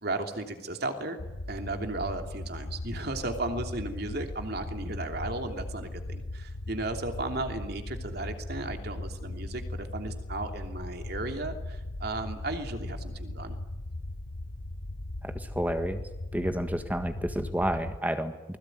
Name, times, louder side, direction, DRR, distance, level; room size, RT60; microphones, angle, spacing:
voice 1, 0.0-1.2 1.5-13.6, right 2 dB, 55° right, 5 dB, 3.0 m, -35 dB
sound 1, 1.2-18.0, left 1 dB, 60° left, 1.1 m, -38 dB
voice 2, 15.5-16.0 16.3-18.6, right 1 dB, 10° right, 8 dB, 1.6 m, -30 dB
29.0 x 21.0 x 9.4 m, 1.1 s
head